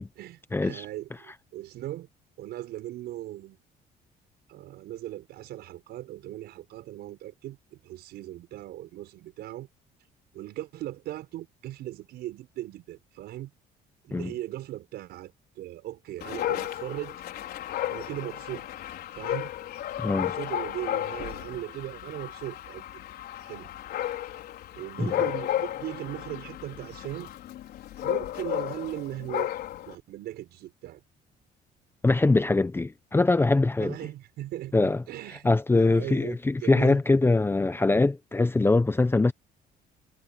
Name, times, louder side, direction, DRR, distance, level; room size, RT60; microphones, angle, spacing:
voice 1, 0.0-2.1 2.4-3.6 4.5-9.7 10.3-13.5 14.0-17.2 17.9-18.7 19.1-19.5 20.2-23.0 23.4-23.7 24.8-27.3 28.0-29.5 29.9-31.0 33.8-37.0, right 14 dB, 75° right, 6.1 m, -38 dB
voice 2, 0.5-0.8 14.1-14.3 20.0-20.3 25.0-25.2 32.0-33.9 34.7-35.0 35.4-39.3, left 3 dB, 15° left, 0.9 m, -23 dB
Dog, 16.2-30.0, left 12 dB, 70° left, 5.1 m, -33 dB
cardioid pair, 110°, 17 cm